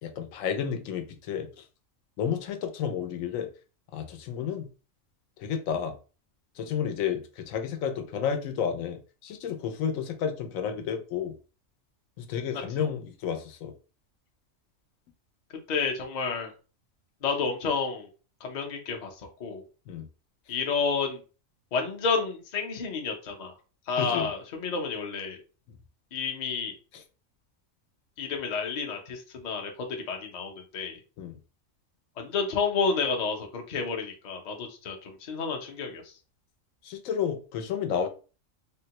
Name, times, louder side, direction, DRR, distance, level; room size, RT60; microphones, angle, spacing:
voice 1, 0.0-1.6 2.2-3.5 3.9-4.7 5.4-5.9 6.6-11.3 12.2-13.7 19.9-20.1 24.0-24.3 26.9-27.0 31.2-31.4 36.8-38.1, left 8 dB, 85° left, 5 dB, 1.0 m, -31 dB
voice 2, 15.7-16.5 17.2-18.1 18.4-19.1 19.4-19.6 20.5-21.2 21.7-23.5 23.9-25.4 26.1-26.7 28.2-31.0 32.2-36.0, left 5 dB, 45° left, 2 dB, 0.6 m, -30 dB
3.5 x 2.1 x 2.8 m, 0.35 s
omnidirectional pair, 1.4 m